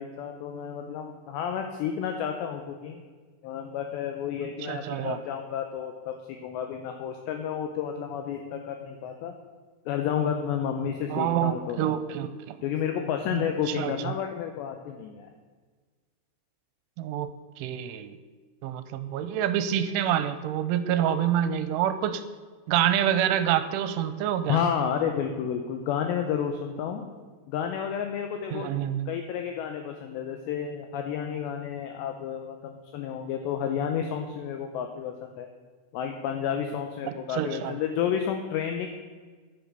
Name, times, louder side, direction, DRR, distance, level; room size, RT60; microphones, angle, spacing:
voice 1, 0.0-3.0 3.4-9.3 9.9-11.9 12.6-15.3 24.5-27.1 27.5-28.7 29.1-35.5 35.9-38.9, left 8 dB, 80° left, 5 dB, 2.7 m, -31 dB
voice 2, 4.7-5.2 11.1-12.6 13.3-14.1 17.0-17.3 17.6-18.2 18.6-22.2 22.7-24.6 28.5-29.1 37.3-37.7, right 10 dB, 85° right, 11 dB, 3.0 m, -27 dB
11.0 x 10.5 x 6.6 m, 1.5 s
omnidirectional pair, 5.7 m